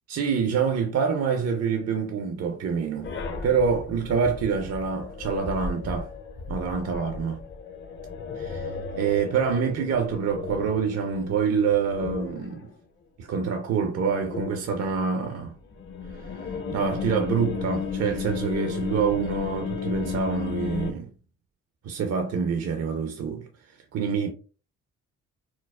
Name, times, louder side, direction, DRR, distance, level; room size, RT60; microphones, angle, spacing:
voice 1, 0.1-3.1 3.4-6.1 6.5-7.4 8.4-8.7 9.0-12.7 13.2-15.6 16.3-21.1 21.8-23.5 23.9-24.3, right 6 dB, 55° right, 0.6 m, -26 dB
sound 1, 3.0-12.7 14.0-14.9 15.6-20.9, left 5 dB, 40° left, 0.6 m, -34 dB
4.5 x 2.0 x 2.3 m
cardioid pair, 90°, 30 cm